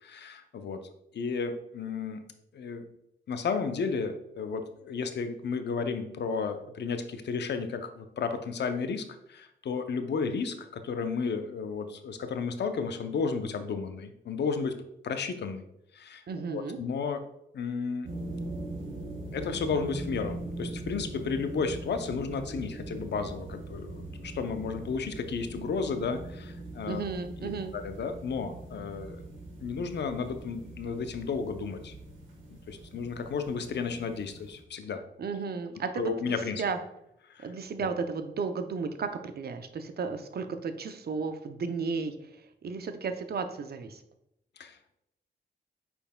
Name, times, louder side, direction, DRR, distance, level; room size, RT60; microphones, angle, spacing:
voice 1, 0.0-0.8 1.1-2.2 2.5-2.9 3.3-9.0 9.3-14.7 15.0-15.6 15.9-16.2 16.5-17.2 17.5-18.1 19.3-27.0 27.4-29.2 29.6-31.9 32.5-35.0 36.0-36.6 37.3-37.5 37.8-37.9 44.6-45.0, left 5 dB, 65° left, 8 dB, 0.6 m, -33 dB
voice 2, 16.3-16.8 26.9-27.7 35.2-36.8 37.4-42.4 42.6-44.0, right 5 dB, 55° right, 8 dB, 0.6 m, -34 dB
sound 1, 18.0-34.6, right 2 dB, 85° right, 1.4 m, -41 dB
5.4 x 4.4 x 2.2 m, 0.80 s
cardioid pair, 50°, 19 cm